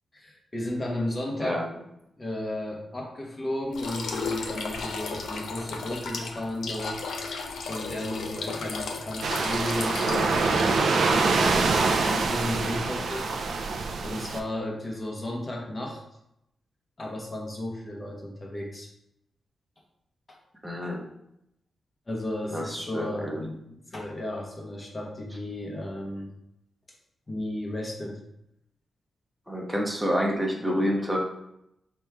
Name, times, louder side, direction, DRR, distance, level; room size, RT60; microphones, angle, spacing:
voice 1, 0.1-1.6 2.2-7.1 7.6-13.6 14.0-16.0 17.0-18.9 20.3-20.4 20.8-20.9 22.1-26.3 27.3-28.2, left 1 dB, 25° left, -1 dB, 0.9 m, -34 dB
sound 1, 3.7-10.9, left 4 dB, 90° left, 0.5 m, -34 dB
sound 2, 9.2-14.4, right 4 dB, 75° right, 0.5 m, -25 dB
voice 2, 20.6-21.1 22.5-23.4 29.5-31.2, equal, 5° right, -1 dB, 0.8 m, -28 dB
3.5 x 3.0 x 4.4 m, 0.80 s
wide cardioid pair, 120°, 0 cm